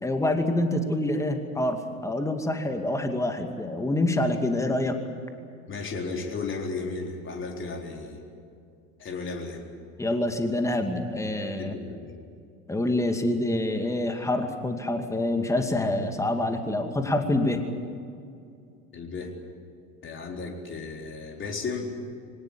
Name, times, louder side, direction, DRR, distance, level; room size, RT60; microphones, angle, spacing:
voice 1, 0.0-5.0 10.0-11.7 12.7-17.6, left 1 dB, 5° left, 6 dB, 2.4 m, -26 dB
voice 2, 5.7-8.2 9.0-9.6 11.6-12.1 18.9-19.3 20.0-21.9, left 4 dB, 30° left, 1 dB, 4.2 m, -34 dB
24.5 x 19.0 x 8.7 m, 2.4 s
figure-of-eight pair, 75°, 42 cm